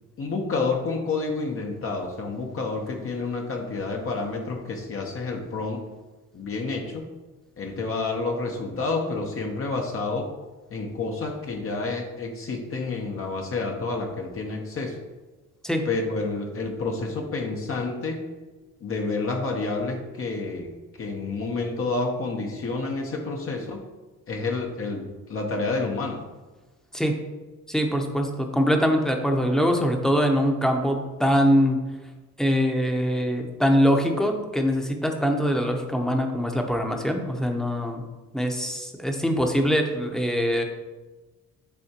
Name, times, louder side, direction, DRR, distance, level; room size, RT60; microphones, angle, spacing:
voice 1, 0.2-5.8 6.3-7.1 7.6-10.3 10.7-15.0 15.8-18.2 18.8-23.9 24.3-26.2, left 3 dB, 45° left, 1 dB, 0.9 m, -29 dB
voice 2, 27.7-31.8 32.4-38.0 38.3-40.6, equal, ahead, 3 dB, 0.8 m, -23 dB
9.7 x 3.5 x 2.9 m, 1.2 s
cardioid pair, 90°, 30 cm